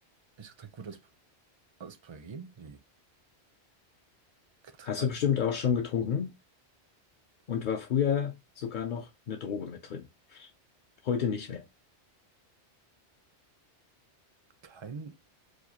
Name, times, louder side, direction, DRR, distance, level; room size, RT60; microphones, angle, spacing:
voice 1, 0.4-1.0 1.8-2.8 4.8-5.1 14.6-15.1, right 5 dB, 40° right, 0.4 m, -44 dB
voice 2, 4.8-6.3 7.5-10.5 11.0-11.6, left 8 dB, 60° left, 0.6 m, -30 dB
4.6 x 2.3 x 2.7 m
omnidirectional pair, 1.1 m